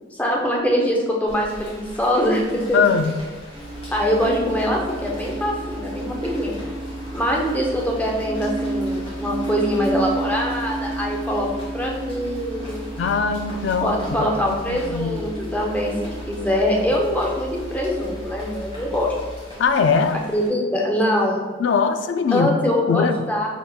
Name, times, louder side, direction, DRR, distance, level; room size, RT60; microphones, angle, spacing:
voice 1, 0.1-2.8 3.9-6.5 7.1-12.9 13.8-15.9 16.3-19.1 20.3-21.5 22.3-23.5, equal, 10° left, -1 dB, 0.5 m, -23 dB
Rain, 1.3-20.5, equal, 30° left, 1.4 m, -42 dB
voice 2, 2.7-3.1 13.0-15.1 19.6-20.2 21.6-23.2, left 5 dB, 70° left, 9 dB, 0.3 m, -21 dB
sound 1, 3.5-16.5, right 2 dB, 60° right, 1.1 m, -32 dB
sound 2, 3.6-19.4, equal, 30° right, 0.7 m, -37 dB
5.2 x 3.5 x 2.3 m, 1.4 s
head